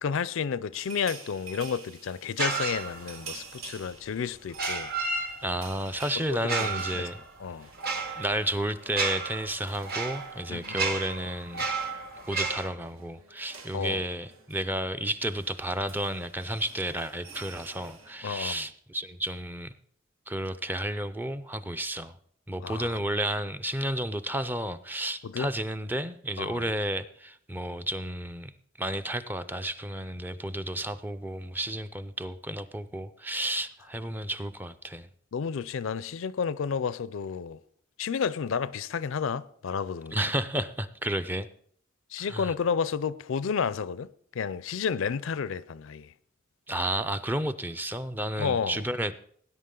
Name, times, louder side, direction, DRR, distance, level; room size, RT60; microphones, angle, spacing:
voice 1, 0.0-4.9 6.2-7.0 7.4-7.7 10.5-10.9 13.7-14.0 18.2-18.6 22.6-23.0 25.2-25.5 26.4-26.6 35.3-37.6 38.0-40.2 42.1-46.1 48.4-48.8, left 6 dB, 65° left, 0.4 m, -31 dB
sound 1, 0.7-8.6 8.9-9.1 9.3-18.4, right 5 dB, 85° right, 1.9 m, -49 dB
sound 2, 2.4-3.3 4.5-5.8 6.4-12.7, right 4 dB, 50° right, 1.4 m, -32 dB
voice 2, 5.4-7.2 8.2-11.6 12.3-19.7 20.3-22.1 22.5-28.5 28.8-35.1 40.1-41.5 42.2-42.5 46.7-49.1, right 1 dB, 10° right, 0.4 m, -32 dB
18.5 x 10.0 x 3.8 m
head